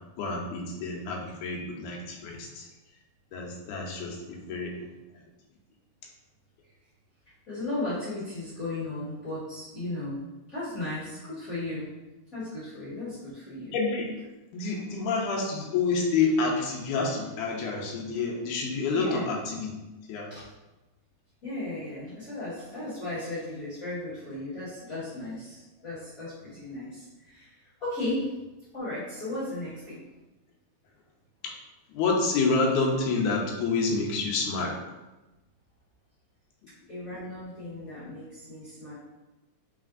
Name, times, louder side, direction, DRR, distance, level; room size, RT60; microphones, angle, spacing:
voice 1, 0.2-2.7 3.3-4.8 13.7-14.1 14.5-19.7 20.1-20.3 31.9-34.8, left 4 dB, 85° left, 0 dB, 2.1 m, -28 dB
voice 2, 7.5-10.2 10.5-11.9 12.3-13.8 18.9-19.2 20.3-20.4 21.4-28.3 28.7-30.0 36.9-38.9, left 2 dB, 45° left, -13 dB, 1.1 m, -35 dB
4.2 x 3.8 x 2.4 m, 1.1 s
omnidirectional pair, 3.4 m